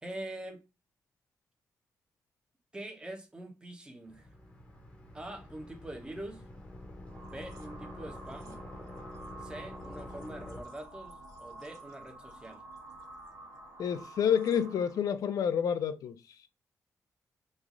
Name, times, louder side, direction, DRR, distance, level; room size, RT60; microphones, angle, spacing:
voice 1, 0.0-0.6 2.7-4.3 5.1-6.5 7.3-8.6 9.4-12.6, right 1 dB, 15° right, 0.7 m, -44 dB
sound 1, 4.1-10.6, left 1 dB, 15° left, 0.8 m, -47 dB
sound 2, 7.0-15.1, right 2 dB, 90° right, 0.9 m, -50 dB
voice 2, 13.8-16.2, left 8 dB, 80° left, 0.4 m, -29 dB
3.1 x 2.4 x 3.7 m
wide cardioid pair, 135°, 6 cm